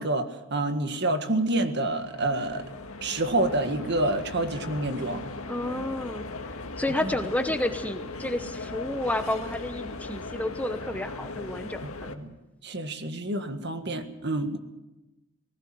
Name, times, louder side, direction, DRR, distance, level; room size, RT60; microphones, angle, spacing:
voice 1, 0.0-2.6 3.0-5.2 6.9-7.1 11.8-12.3 12.6-14.6, right 2 dB, 50° right, 7 dB, 1.8 m, -28 dB
sound 1, 1.3-12.1, left 3 dB, 85° left, 1.9 m, -38 dB
voice 2, 5.5-6.2 6.8-12.1, left 1 dB, 5° left, 8 dB, 0.9 m, -30 dB
19.5 x 17.0 x 7.8 m, 1.0 s
head